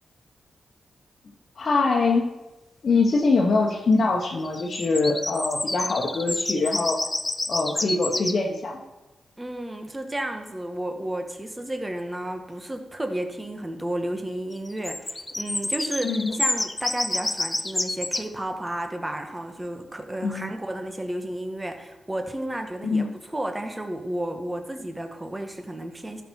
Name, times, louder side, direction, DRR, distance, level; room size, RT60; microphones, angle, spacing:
voice 1, 1.6-2.3 2.8-7.0 7.5-8.8 16.0-16.4 20.2-20.5 22.8-23.1, left 3 dB, 60° left, -2 dB, 1.3 m, -23 dB
sound 1, 4.4-8.4 14.5-18.2, left 2 dB, 20° left, 0.6 m, -29 dB
voice 2, 9.4-26.2, right 1 dB, 20° right, 5 dB, 1.5 m, -32 dB
13.0 x 6.0 x 4.6 m, 1.0 s
cardioid pair, 60°, 0 cm